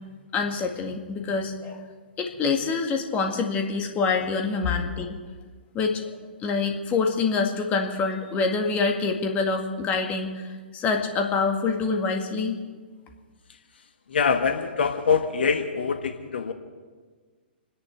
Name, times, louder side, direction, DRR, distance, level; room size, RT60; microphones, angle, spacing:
voice 1, 0.3-1.9 2.2-5.2 5.7-6.0 6.4-12.6, left 4 dB, 25° left, 3 dB, 1.9 m, -26 dB
voice 2, 14.1-16.5, left 5 dB, 70° left, 6 dB, 1.3 m, -24 dB
28.0 x 10.5 x 4.6 m, 1.5 s
figure-of-eight pair, 120°, 6 cm